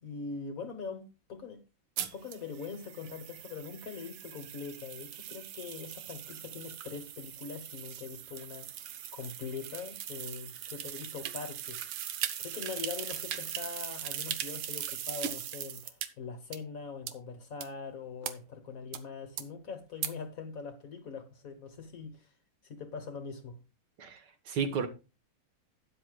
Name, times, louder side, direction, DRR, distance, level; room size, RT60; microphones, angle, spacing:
voice 1, 0.0-1.6 2.1-8.7 9.1-11.8 12.4-22.3 22.6-23.6, left 5 dB, 45° left, 1.4 m, -42 dB
sound 1, 2.0-16.1 16.5-16.6 17.1-17.2 17.6-17.7 18.2-18.3 18.9-19.0 19.4-19.5 20.0-20.1, right 10 dB, 80° right, 1.7 m, -40 dB
voice 2, 24.0-24.9, right 6 dB, 55° right, 1.7 m, -33 dB
12.0 x 9.4 x 2.3 m
omnidirectional pair, 2.4 m